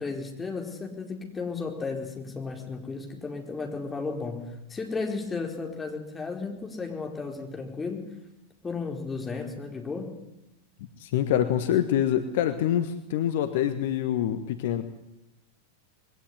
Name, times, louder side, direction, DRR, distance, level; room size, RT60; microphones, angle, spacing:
voice 1, 0.0-8.1 8.6-10.1, left 4 dB, 15° left, 2 dB, 4.6 m, -34 dB
voice 2, 11.0-14.8, left 10 dB, 55° left, 10 dB, 1.3 m, -25 dB
21.5 x 17.5 x 9.7 m, 0.90 s
figure-of-eight pair, 90°, 0 cm